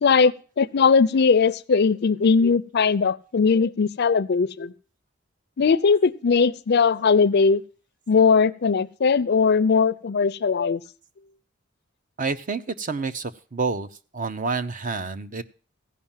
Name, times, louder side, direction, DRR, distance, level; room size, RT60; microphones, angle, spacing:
voice 1, 0.0-4.7 5.6-7.6 8.1-10.8, left 5 dB, 55° left, 0.5 m, -19 dB
voice 2, 12.2-13.9 14.1-15.4, right 4 dB, 40° right, 0.6 m, -28 dB
16.0 x 5.3 x 7.2 m
head